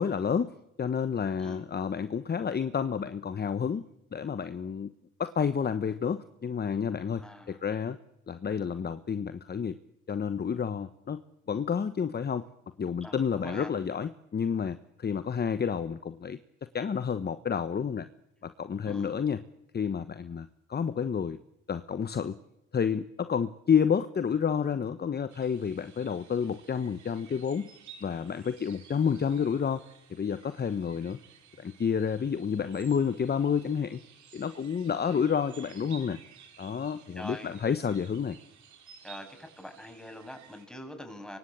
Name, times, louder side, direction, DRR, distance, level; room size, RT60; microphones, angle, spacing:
voice 1, 0.0-3.8 4.1-4.9 5.2-8.0 8.3-9.8 10.1-11.2 11.5-12.5 12.8-16.4 16.7-18.1 18.4-19.4 19.7-21.4 21.7-22.4 22.7-27.7 28.0-29.8 30.1-31.2 31.6-34.0 34.3-36.2 36.6-38.4, left 7 dB, 30° left, 12 dB, 1.1 m, -30 dB
voice 2, 7.2-7.6 13.0-13.7 18.9-19.2 37.2-37.6 39.0-41.4, left 1 dB, ahead, 4 dB, 7.3 m, -44 dB
sound 1, 25.3-40.7, right 7 dB, 65° right, 4.6 m, -54 dB
24.5 x 24.0 x 8.8 m, 0.89 s
supercardioid pair, 75°, 31 cm